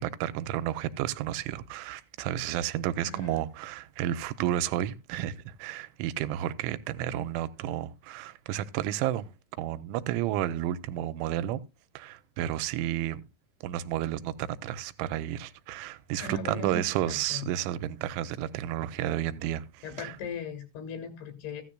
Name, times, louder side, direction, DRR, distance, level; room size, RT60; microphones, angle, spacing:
voice 1, 0.0-9.3 9.6-11.6 12.0-13.2 13.6-20.2, right 12 dB, 85° right, 3.0 m, -31 dB
voice 2, 3.0-3.4 16.2-17.5 19.8-21.6, left 4 dB, 75° left, 4.2 m, -38 dB
14.5 x 10.0 x 2.2 m
omnidirectional pair, 5.4 m